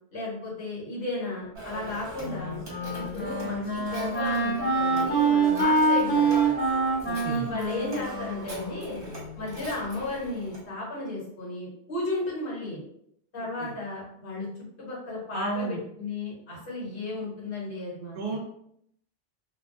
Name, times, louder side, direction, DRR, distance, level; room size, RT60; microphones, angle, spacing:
voice 1, 0.1-2.6 3.0-6.3 7.2-9.0 9.4-12.8 13.3-14.5 14.8-18.2, left 2 dB, 60° left, -5 dB, 1.2 m, -34 dB
Telephone, 1.5-10.6, right 2 dB, 30° right, 0.7 m, -41 dB
Wind instrument woodwind instrument, 2.2-9.3, right 3 dB, 15° left, 0.7 m, -26 dB
voice 2, 7.1-7.5 13.6-13.7 15.3-15.8 18.1-18.4, right 3 dB, 65° right, 0 dB, 0.7 m, -32 dB
2.4 x 2.2 x 2.5 m, 0.72 s
omnidirectional pair, 1.1 m